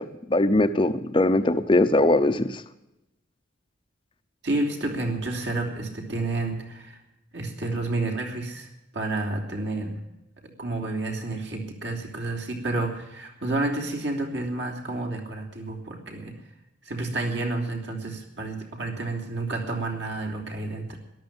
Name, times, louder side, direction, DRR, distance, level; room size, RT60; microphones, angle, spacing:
voice 1, 0.0-2.6, left 2 dB, 25° left, 10 dB, 0.6 m, -21 dB
voice 2, 4.4-7.0 7.3-10.0 10.6-16.4 16.8-21.0, right 2 dB, 60° right, 2 dB, 3.3 m, -30 dB
13.5 x 12.0 x 8.8 m, 0.91 s
head